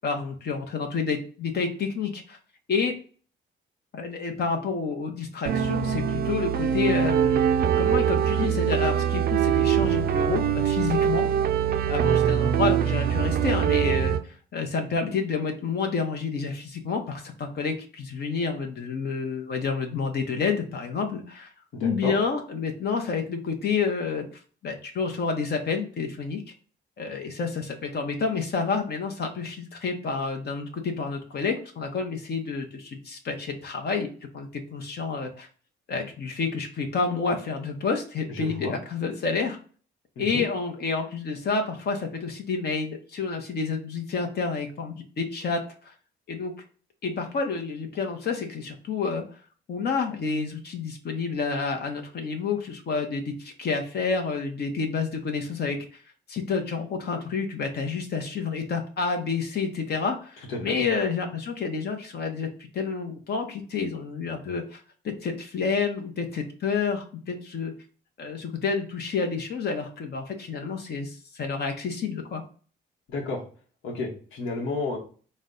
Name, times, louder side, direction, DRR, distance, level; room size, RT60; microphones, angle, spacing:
voice 1, 0.0-2.4 2.7-2.9 3.9-7.4 7.8-11.2 11.8-21.5 21.8-24.3 24.6-26.4 27.0-34.1 34.3-35.5 35.9-39.6 40.2-45.9 46.3-46.5 47.0-49.2 49.7-55.8 56.3-62.5 62.7-67.7 68.2-72.4, left 5 dB, 55° left, 3 dB, 0.8 m, -29 dB
sound 1, 5.5-14.2, right 9 dB, 50° right, 0.4 m, -23 dB
voice 2, 21.7-22.1 38.3-38.7 40.2-40.5 60.5-60.8 73.1-73.4 73.8-75.0, left 3 dB, 80° left, -2 dB, 1.0 m, -31 dB
4.0 x 2.2 x 3.7 m, 0.41 s
cardioid pair, 90°, 20 cm